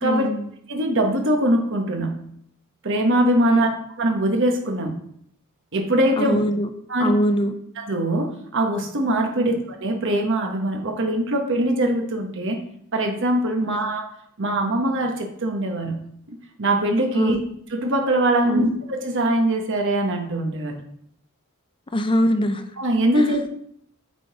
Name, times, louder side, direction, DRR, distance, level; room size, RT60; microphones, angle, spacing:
voice 1, 0.0-0.5 3.4-3.7 6.2-6.7 7.0-7.6 9.3-9.6 13.6-13.9 17.1-17.4 18.4-18.7 21.9-22.7 23.2-23.4, equal, 25° left, 7 dB, 0.5 m, -23 dB
voice 2, 0.7-2.2 2.8-3.7 4.0-5.0 5.7-6.4 6.9-7.1 7.8-12.6 12.9-14.0 14.4-16.0 16.3-17.4 17.7-20.7 22.8-23.5, right 1 dB, 60° right, 3 dB, 1.2 m, -22 dB
8.3 x 3.8 x 4.8 m, 0.68 s
head